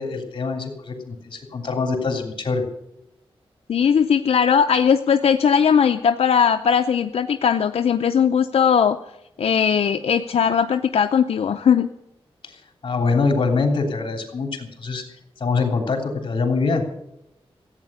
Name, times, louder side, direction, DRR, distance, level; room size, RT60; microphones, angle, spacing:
voice 1, 0.0-2.6 12.8-15.0 15.4-16.8, left 4 dB, 55° left, 3 dB, 3.2 m, -24 dB
voice 2, 3.7-9.0 9.4-11.9, left 7 dB, 85° left, 6 dB, 0.6 m, -19 dB
15.0 x 8.9 x 8.5 m, 0.83 s
wide cardioid pair, 150°, 10 cm